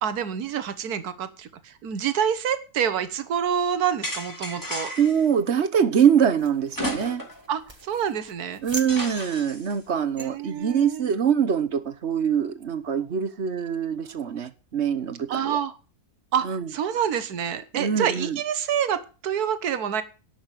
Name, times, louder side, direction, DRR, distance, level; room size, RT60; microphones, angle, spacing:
voice 1, 0.0-4.9 7.5-8.6 10.2-11.1 15.3-15.7 16.3-20.0, right 8 dB, 80° right, 1.6 m, -27 dB
sound 1, 4.0-5.2 6.7-7.5 7.8-7.9 8.9-9.7, left 1 dB, 10° left, 3.0 m, -33 dB
voice 2, 5.0-7.2 8.6-15.6 16.4-16.7 17.7-18.4, right 8 dB, 50° right, 1.2 m, -24 dB
sound 2, 6.4-10.9, right 2 dB, 20° right, 1.3 m, -43 dB
11.5 x 5.9 x 9.0 m
omnidirectional pair, 1.6 m